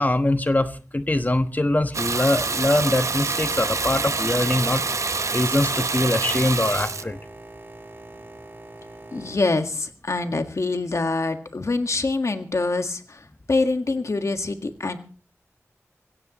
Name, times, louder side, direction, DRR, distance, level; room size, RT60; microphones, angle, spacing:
voice 1, 0.0-4.8 5.3-7.2, left 1 dB, 30° left, 1.2 m, -23 dB
Water tap faucet / Bathtub (filling or washing), 1.9-7.0, right 3 dB, 70° right, 0.9 m, -26 dB
Boat Water vehicle, 4.2-10.6, right 2 dB, 40° right, 5.8 m, -44 dB
voice 2, 9.1-15.0, left 3 dB, 65° left, 1.7 m, -25 dB
24.0 x 16.5 x 3.0 m
wide cardioid pair, 55°, 5 cm